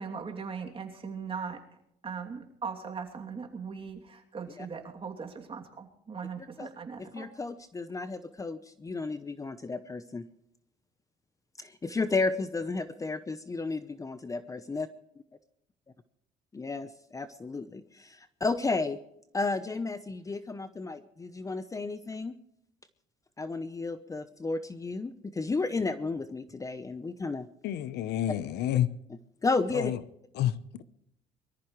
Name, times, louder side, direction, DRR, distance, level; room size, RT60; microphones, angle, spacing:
voice 1, 0.0-1.6 2.0-7.3, right 5 dB, 35° right, 2.9 m, -39 dB
voice 2, 7.0-10.2 11.6-14.9 16.5-19.0 19.3-22.4 23.4-27.5 29.4-29.9, left 3 dB, 20° left, 0.8 m, -33 dB
voice 3, 27.6-28.9 29.7-30.0 30.3-30.5, left 12 dB, 80° left, 0.9 m, -28 dB
23.5 x 14.0 x 3.2 m
cardioid pair, 110°, 17 cm